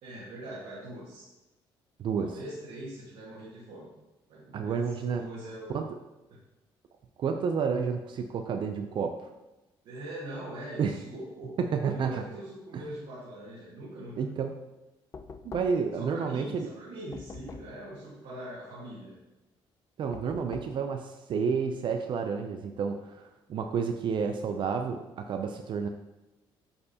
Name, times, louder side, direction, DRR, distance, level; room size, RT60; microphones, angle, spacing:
voice 1, 0.0-1.3 2.2-3.9 4.3-4.8 5.2-5.7 9.8-11.6 11.9-14.3 15.9-19.2, right 1 dB, 75° right, -8 dB, 1.7 m, -42 dB
voice 2, 2.0-2.4 4.5-5.3 5.7-5.9 7.2-9.3 10.8-11.0 11.6-12.2 12.7-12.8 14.2-14.6 15.4-16.7 20.0-25.9, right 6 dB, 55° right, 6 dB, 0.5 m, -30 dB
Knock, 15.1-16.0 17.1-17.9 20.1-20.9, left 5 dB, 30° left, 0.4 m, -45 dB
8.5 x 4.6 x 2.8 m, 1.0 s
cardioid pair, 105°, 10 cm